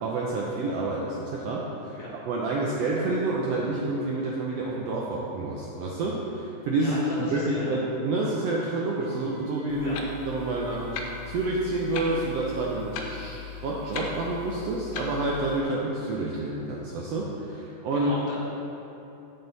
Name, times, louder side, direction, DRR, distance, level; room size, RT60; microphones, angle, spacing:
voice 1, 0.0-1.9 2.3-10.0 10.3-18.1, right 2 dB, 75° right, -4 dB, 1.5 m, -28 dB
voice 2, 6.8-7.8 9.8-10.0 17.9-18.4, left 1 dB, 55° left, -7 dB, 2.5 m, -36 dB
Wind instrument woodwind instrument, 6.8-13.1, right 5 dB, 60° right, 1.1 m, -49 dB
Clock, 9.7-15.6, left 5 dB, 80° left, 2.2 m, -38 dB
7.9 x 7.7 x 4.0 m, 2.9 s
omnidirectional pair, 3.5 m